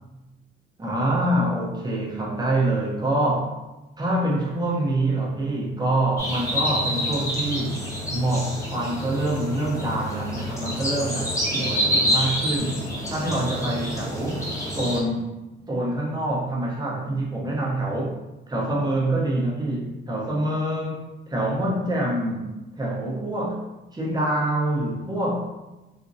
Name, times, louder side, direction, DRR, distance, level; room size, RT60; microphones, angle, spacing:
voice 1, 0.8-3.6 4.0-7.9 8.1-14.4 14.8-15.3 15.7-18.2 18.5-23.7 23.9-25.5, right 1 dB, 20° right, -4 dB, 0.8 m, -26 dB
sound 1, 6.2-15.0, equal, 15° left, 0.9 m, -27 dB
2.8 x 2.5 x 2.6 m, 1.0 s
cardioid pair, 90°, 20 cm